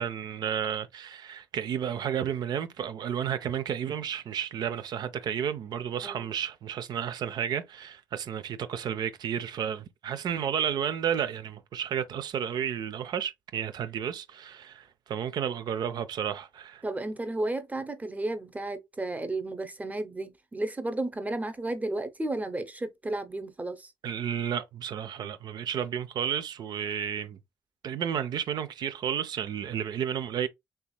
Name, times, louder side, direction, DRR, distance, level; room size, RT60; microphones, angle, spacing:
voice 1, 0.0-16.8 24.0-27.4 27.8-30.5, right 8 dB, 65° right, 0.5 m, -32 dB
voice 2, 16.8-23.9, right 2 dB, 20° right, 0.8 m, -33 dB
3.4 x 3.0 x 2.3 m
supercardioid pair, 55°, 8 cm